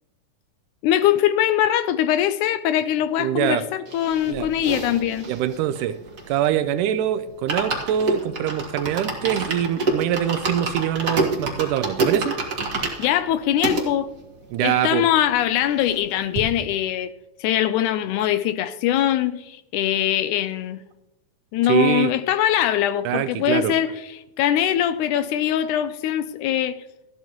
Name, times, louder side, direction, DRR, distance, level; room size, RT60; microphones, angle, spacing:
voice 1, 0.8-5.3 13.0-14.1 14.6-17.1 17.4-20.8 21.5-26.8, left 11 dB, 80° left, 1.9 m, -22 dB
voice 2, 3.2-3.6 4.3-4.5 5.3-6.0 6.3-12.4 14.5-15.0 21.7-22.1 23.1-23.7, right 11 dB, 80° right, 2.1 m, -23 dB
sound 1, 3.9-6.6 7.0-7.1 7.3-13.9 14.4-14.5 14.7-14.8 15.1-16.1 16.4-16.5, right 2 dB, 35° right, 1.4 m, -28 dB
13.5 x 12.0 x 3.0 m
omnidirectional pair, 3.8 m